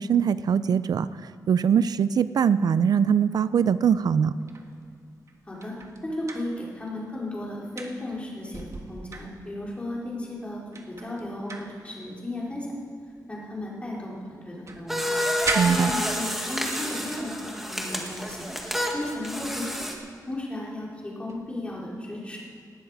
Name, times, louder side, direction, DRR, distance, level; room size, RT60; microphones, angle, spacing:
voice 1, 0.0-4.3 15.6-15.9, right 7 dB, 75° right, 14 dB, 0.4 m, -22 dB
sound 1, 3.8-7.2 7.4-9.9 10.4-10.5 10.7-14.0 14.3-16.6 17.3-17.7 18.0-18.2 21.3-21.5, right 3 dB, 50° right, 1.5 m, -38 dB
voice 2, 6.0-12.7 13.3-15.1 15.7-18.5 18.9-19.8 20.3-22.4, left 1 dB, 20° left, -4 dB, 3.7 m, -35 dB
sound 2, 14.9-19.9, equal, 5° right, 1.8 m, -29 dB
18.5 x 12.0 x 4.8 m, 2.3 s
wide cardioid pair, 130°, 7 cm